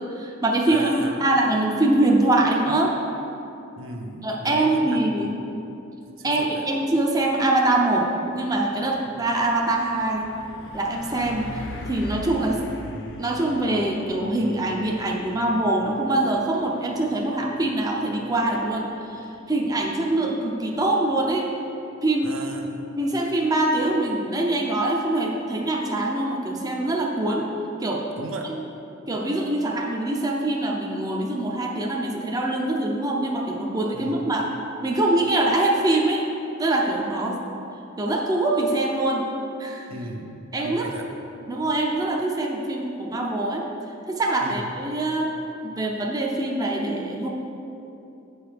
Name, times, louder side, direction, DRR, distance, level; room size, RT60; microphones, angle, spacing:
voice 1, 0.1-3.0 4.2-5.3 6.2-10.3 10.7-12.6 13.2-21.5 22.0-22.3 22.9-27.5 27.8-28.1 28.5-28.6 29.1-34.5 34.8-36.3 36.6-37.4 38.0-39.3 39.6-39.9 40.5-40.9 41.5-43.7 44.1-45.3 45.6-47.3, right 2 dB, 20° right, -1 dB, 0.6 m, -24 dB
voice 2, 0.7-1.3 3.8-5.3 6.2-6.7 22.2-22.9 28.2-28.5 33.9-34.3 39.9-41.1 44.4-44.8, right 1 dB, 75° right, 2 dB, 0.9 m, -36 dB
Truck, 7.3-21.5, left 2 dB, 60° left, 0.7 m, -42 dB
8.8 x 4.7 x 5.0 m, 2.8 s
head